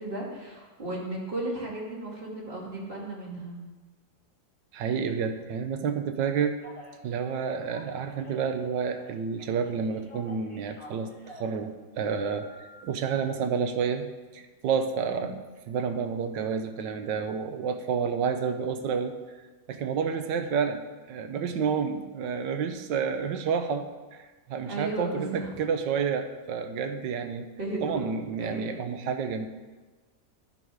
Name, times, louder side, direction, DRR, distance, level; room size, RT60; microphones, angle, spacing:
voice 1, 0.0-3.6 15.0-15.3 24.6-25.6 27.6-27.9 28.4-28.8, right 2 dB, 30° right, -4 dB, 2.3 m, -35 dB
voice 2, 4.7-6.6 7.0-11.1 11.4-12.5 12.8-14.1 14.3-15.4 15.7-19.2 19.7-27.5 27.8-29.5, right 6 dB, 80° right, 8 dB, 1.4 m, -29 dB
Telephone, 6.6-6.9 7.4-9.1 9.4-11.5 12.1-12.8, left 1 dB, 15° left, 1.6 m, -49 dB
11.5 x 5.6 x 4.8 m, 1.3 s
omnidirectional pair, 1.9 m